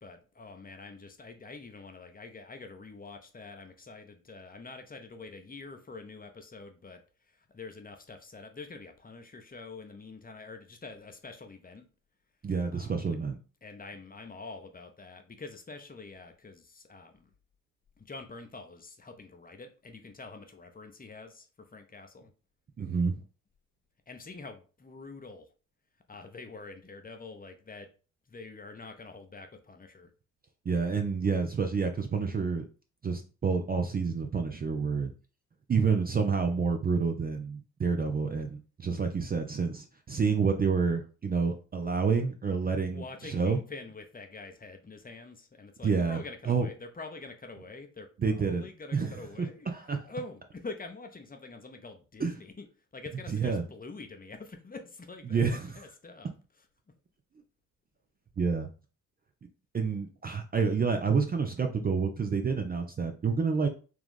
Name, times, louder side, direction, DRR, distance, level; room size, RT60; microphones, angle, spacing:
voice 1, 0.0-11.8 12.7-13.2 13.6-17.3 18.0-22.3 24.1-25.5 26.1-27.9 28.3-30.1 42.9-52.7 52.9-56.3, left 3 dB, 20° left, 6 dB, 0.7 m, -46 dB
voice 2, 12.4-13.4 22.8-23.2 30.6-32.6 33.0-35.1 35.7-43.6 45.8-46.2 46.5-46.7 48.2-50.0 52.2-52.3 53.3-53.6 55.3-55.8 58.4-58.7 59.7-63.7, right 5 dB, 20° right, 4 dB, 0.5 m, -29 dB
3.5 x 3.0 x 3.6 m, 0.36 s
figure-of-eight pair, 40°, 43 cm